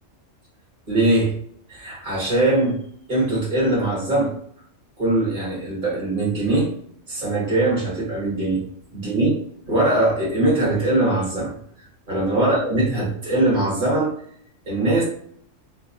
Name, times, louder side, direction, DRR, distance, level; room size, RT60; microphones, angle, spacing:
voice 1, 0.9-1.3 1.7-2.8 3.1-4.3 5.0-6.7 7.1-8.6 8.9-9.4 9.7-11.5 12.1-14.1 14.7-15.0, right 2 dB, 45° right, -5 dB, 1.3 m, -21 dB
2.9 x 2.6 x 2.4 m, 0.63 s
omnidirectional pair, 1.3 m